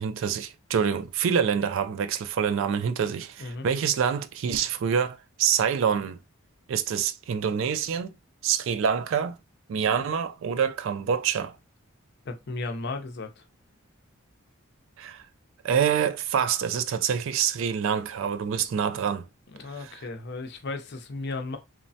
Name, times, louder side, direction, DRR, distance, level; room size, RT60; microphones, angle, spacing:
voice 1, 0.0-6.2 6.7-8.1 8.4-9.4 9.7-11.5 15.0-15.2 15.6-19.3, right 7 dB, 65° right, 0.3 m, -26 dB
voice 2, 12.3-13.4 19.5-21.6, left 3 dB, 55° left, 0.5 m, -35 dB
3.1 x 2.0 x 2.7 m
head